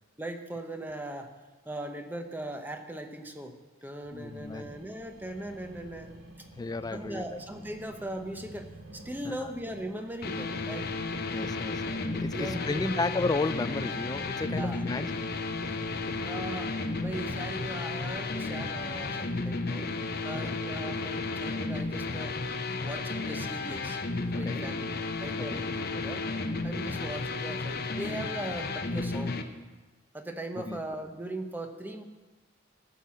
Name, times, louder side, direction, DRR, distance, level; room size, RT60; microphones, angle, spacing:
voice 1, 0.2-1.3 1.6-6.1 6.4-6.5 6.9-10.9 12.3-13.1 14.5-14.8 16.2-16.7 17.0-19.9 20.2-22.4 22.8-24.0 24.3-26.2 26.6-29.4 30.1-32.0, right 1 dB, 10° right, 5 dB, 0.8 m, -39 dB
sound 1, 4.0-19.2, right 1 dB, 60° right, 3.6 m, -49 dB
voice 2, 4.1-4.7 6.6-7.4 9.3-9.4 11.3-11.9 12.1-15.2 20.3-20.6 24.4-24.6 25.5-25.6 30.7-30.8, left 3 dB, 20° left, 13 dB, 0.3 m, -33 dB
sound 2, 10.2-29.4, left 3 dB, 55° left, 0.8 m, -33 dB
14.0 x 5.6 x 7.5 m, 1.2 s
head